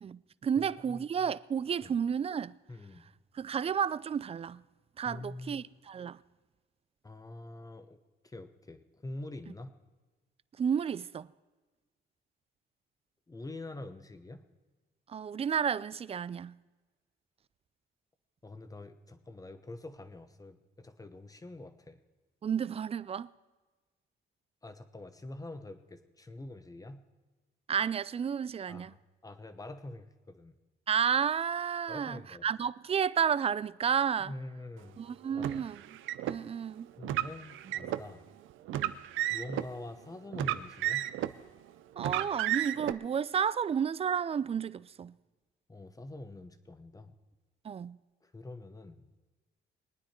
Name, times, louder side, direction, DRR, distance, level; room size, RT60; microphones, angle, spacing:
voice 1, 0.0-2.5 3.3-4.6 5.0-6.2 10.6-11.3 15.1-16.6 22.4-23.3 27.7-28.9 30.9-34.3 35.0-35.8 36.3-36.9 38.7-38.9 42.0-45.1 47.6-48.0, right 7 dB, 30° right, 0.4 m, -31 dB
voice 2, 0.6-1.3 1.8-1.9 2.7-3.0 5.0-5.6 7.0-8.0 8.2-9.7 13.3-14.4 18.4-22.0 24.6-27.0 28.7-30.5 31.9-32.5 34.2-35.0 35.3-35.6 37.0-38.2 39.3-41.1 45.7-47.1 48.2-49.1, left 2 dB, 15° left, 1.1 m, -45 dB
Car, 35.4-36.4 37.0-38.0 38.7-39.7 40.3-41.4 42.0-42.9, right 13 dB, 85° right, 0.6 m, -32 dB
21.5 x 9.6 x 4.5 m
cardioid pair, 90°, 20 cm